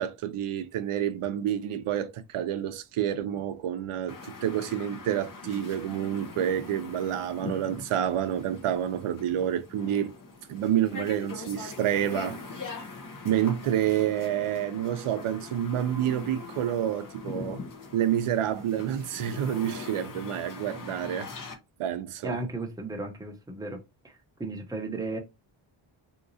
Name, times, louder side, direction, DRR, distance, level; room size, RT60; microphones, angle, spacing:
voice 1, 0.0-10.1 10.5-12.4 12.7-12.8 13.2-17.6 17.9-21.3 21.8-22.4, right 10 dB, 85° right, 0.6 m, -28 dB
sound 1, 4.1-21.5, left 4 dB, 40° left, 0.8 m, -42 dB
voice 2, 22.2-24.1 24.4-25.2, right 2 dB, 10° right, 0.7 m, -35 dB
3.8 x 2.8 x 2.6 m
wide cardioid pair, 150°, 49 cm